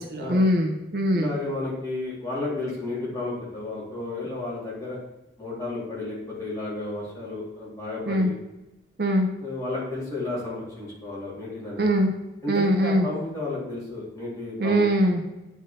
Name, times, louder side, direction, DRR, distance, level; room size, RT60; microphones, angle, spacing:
voice 1, 0.0-1.3 8.0-8.3 9.0-9.3 11.8-12.1 12.5-13.1 14.6-15.2, equal, 60° right, 2 dB, 0.8 m, -22 dB
voice 2, 1.1-5.0 5.4-8.3 9.4-11.8 12.4-14.8, left 2 dB, 20° left, -7 dB, 2.5 m, -32 dB
8.9 x 3.5 x 4.2 m, 1.0 s
head